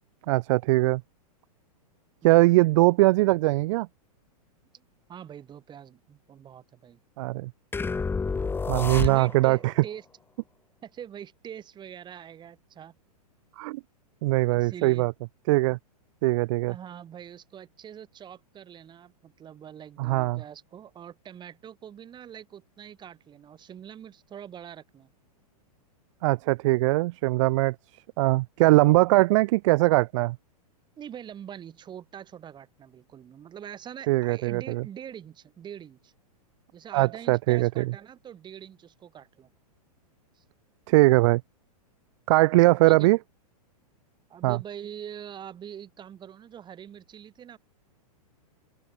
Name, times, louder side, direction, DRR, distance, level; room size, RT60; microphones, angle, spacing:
voice 1, 0.3-1.0 2.2-3.9 7.2-7.5 8.7-9.7 13.6-13.8 14.2-15.1 15.5-15.8 16.2-16.7 20.0-20.4 26.2-27.7 28.2-30.4 34.1-34.8 36.9-37.9 40.9-41.4 42.3-43.2 44.4-44.6, right 20 dB, 50° right, 1.3 m, -21 dB
voice 2, 5.1-7.0 8.7-10.0 10.8-13.0 14.5-15.1 16.6-25.1 28.7-29.2 31.0-36.1 36.7-39.5 40.4-40.5 42.9-43.1 44.3-47.6, right 9 dB, 20° right, 7.9 m, -44 dB
sound 1, 7.7-9.6, left 4 dB, 10° left, 2.8 m, -29 dB
open air
hypercardioid pair, 130°, 20 cm